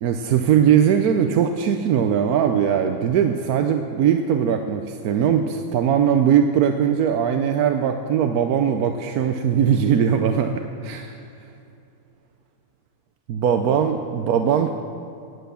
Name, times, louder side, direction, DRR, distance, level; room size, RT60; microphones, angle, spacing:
voice 1, 0.0-11.2 13.3-14.7, right 8 dB, 80° right, 6 dB, 1.2 m, -20 dB
18.5 x 8.2 x 6.9 m, 2.6 s
omnidirectional pair, 1.6 m